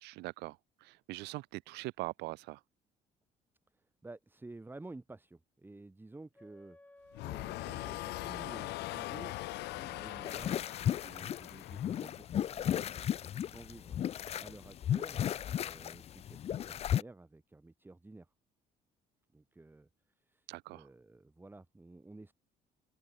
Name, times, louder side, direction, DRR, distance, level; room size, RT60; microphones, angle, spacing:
voice 1, 0.0-2.6 20.5-20.9, right 21 dB, 85° right, 0.5 m, -42 dB
voice 2, 3.7-9.4 9.7-10.6 10.9-14.0 14.4-15.2 15.5-18.3 19.3-19.9 20.2-22.3, right 2 dB, 10° right, 1.7 m, -52 dB
Wind instrument woodwind instrument, 6.3-10.8, left 2 dB, 10° left, 2.3 m, -57 dB
sound 1, 7.1-12.3, left 19 dB, 85° left, 1.5 m, -41 dB
sound 2, 10.2-17.0, left 10 dB, 40° left, 0.3 m, -35 dB
open air
cardioid pair, 110°, 17 cm